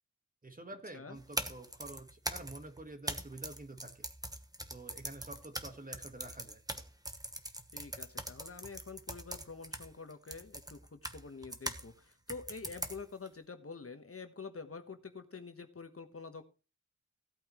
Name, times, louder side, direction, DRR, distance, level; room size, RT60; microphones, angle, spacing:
voice 1, 0.4-4.1 4.7-6.6, right 2 dB, 30° right, 7 dB, 1.6 m, -48 dB
sound 1, 1.2-11.8 12.3-13.3, right 1 dB, 15° right, 1.2 m, -42 dB
voice 2, 7.7-16.4, left 4 dB, 50° left, 8 dB, 1.3 m, -47 dB
16.0 x 8.7 x 3.1 m, 0.32 s
wide cardioid pair, 90°, 29 cm